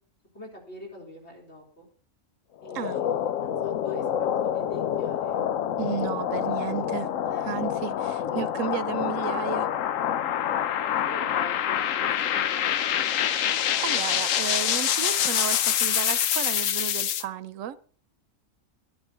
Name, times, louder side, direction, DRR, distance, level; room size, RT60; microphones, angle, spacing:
voice 1, 0.3-1.9 2.6-5.4 7.2-7.5 10.7-12.7, left 1 dB, 55° left, 4.1 m, -45 dB
sound 1, 2.6-17.2, left 10 dB, 80° left, 1.1 m, -26 dB
voice 2, 5.8-7.1 7.4-9.7 13.8-17.8, right 10 dB, 80° right, 1.1 m, -33 dB
12.0 x 9.9 x 5.6 m
omnidirectional pair, 1.3 m